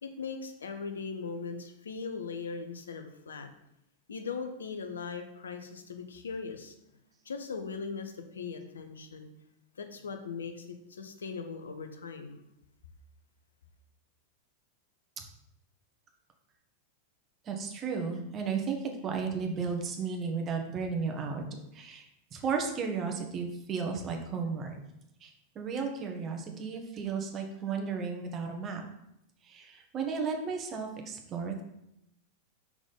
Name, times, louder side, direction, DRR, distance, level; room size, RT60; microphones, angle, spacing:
voice 1, 0.0-3.5 4.1-6.7 7.2-9.3 9.8-12.4, left 5 dB, 70° left, 6 dB, 0.7 m, -39 dB
voice 2, 17.5-21.4 21.7-22.0 22.3-24.8 25.2-25.3 25.5-28.8 29.5-31.6, right 5 dB, 30° right, 3 dB, 1.2 m, -34 dB
5.9 x 3.9 x 5.4 m, 0.81 s
figure-of-eight pair, 90°, 0 cm